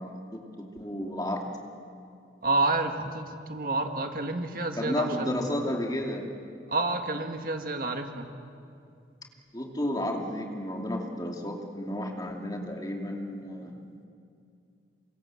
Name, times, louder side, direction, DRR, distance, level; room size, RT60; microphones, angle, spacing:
voice 1, 0.0-1.4 4.8-6.3 9.5-13.7, left 1 dB, 20° left, 1 dB, 2.7 m, -32 dB
voice 2, 2.4-5.5 6.7-8.3, right 2 dB, 50° right, 4 dB, 1.9 m, -29 dB
27.5 x 25.0 x 7.9 m, 2.5 s
head